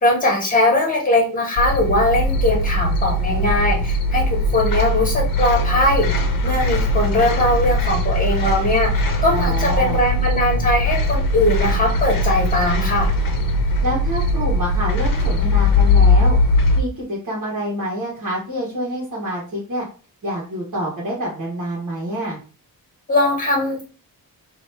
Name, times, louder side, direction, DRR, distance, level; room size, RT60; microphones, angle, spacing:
voice 1, 0.0-6.1 6.4-8.9 9.2-13.1 23.1-23.9, left 1 dB, 25° left, -1 dB, 1.5 m, -20 dB
sound 1, 1.6-16.8, left 1 dB, 60° left, 0.8 m, -20 dB
voice 2, 9.3-10.0 13.8-16.4 16.7-19.8 20.2-22.4, equal, 55° right, -6 dB, 1.4 m, -27 dB
2.9 x 2.8 x 4.5 m, 0.37 s
wide cardioid pair, 145°, 36 cm